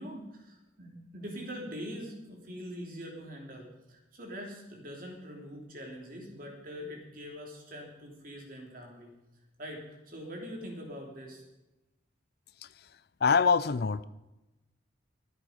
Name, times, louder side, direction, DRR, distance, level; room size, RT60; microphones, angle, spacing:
voice 1, 0.0-9.1 9.6-9.8 10.1-11.4, equal, 45° right, 0 dB, 3.3 m, -43 dB
voice 2, 13.2-14.0, left 5 dB, 55° left, 16 dB, 0.4 m, -25 dB
23.0 x 7.9 x 5.3 m, 0.99 s
head